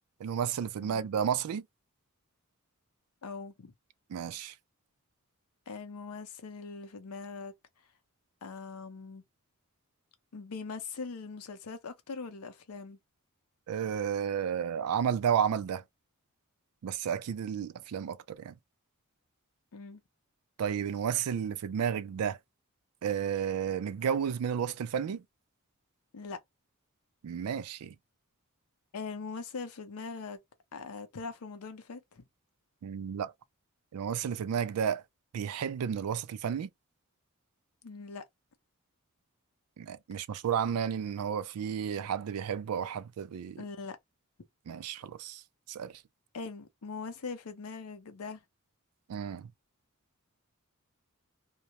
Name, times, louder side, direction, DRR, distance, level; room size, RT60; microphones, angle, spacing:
voice 1, 0.2-1.6 4.1-4.5 13.7-15.8 16.8-18.5 20.6-22.4 23.0-25.2 27.2-27.9 32.8-33.3 33.9-35.0 35.3-36.7 39.8-43.6 44.7-45.4 45.7-46.0 49.1-49.5, right 8 dB, 85° right, 0.3 m, -32 dB
voice 2, 3.2-3.7 5.7-7.5 8.4-9.2 10.3-13.0 19.7-20.0 26.1-26.4 28.9-30.4 30.7-32.2 37.8-38.2 43.6-44.0 46.3-48.4, left 4 dB, 85° left, 0.6 m, -41 dB
2.2 x 2.0 x 2.8 m
head